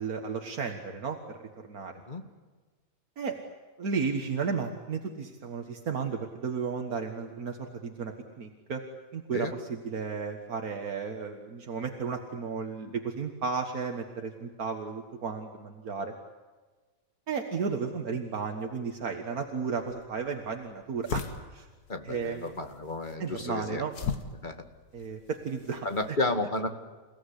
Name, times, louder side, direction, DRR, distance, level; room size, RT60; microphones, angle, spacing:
voice 1, 0.0-2.0 3.2-3.4 3.8-8.8 9.1-16.1 17.3-21.2 21.5-21.7 22.0-22.4 23.2-23.9 24.9-26.2, right 5 dB, 70° right, 4 dB, 2.1 m, -34 dB
sound 1, 19.7-26.1, left 6 dB, 75° left, 2.2 m, -40 dB
voice 2, 21.9-23.8 24.4-24.6 25.8-26.7, left 2 dB, 30° left, 7 dB, 2.3 m, -32 dB
29.0 x 17.0 x 9.9 m, 1.4 s
omnidirectional pair, 1.6 m